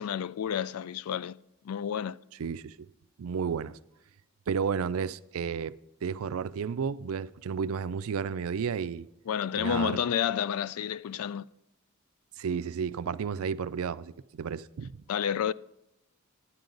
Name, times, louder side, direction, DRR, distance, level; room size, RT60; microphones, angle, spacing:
voice 1, 0.0-1.4 1.6-2.2 9.3-11.5 15.1-15.5, left 8 dB, 80° left, 0.3 m, -30 dB
voice 2, 2.4-2.8 3.2-3.8 4.5-5.7 6.0-9.1 9.5-10.0 12.4-15.0, right 6 dB, 75° right, 0.4 m, -32 dB
10.5 x 10.0 x 3.9 m
head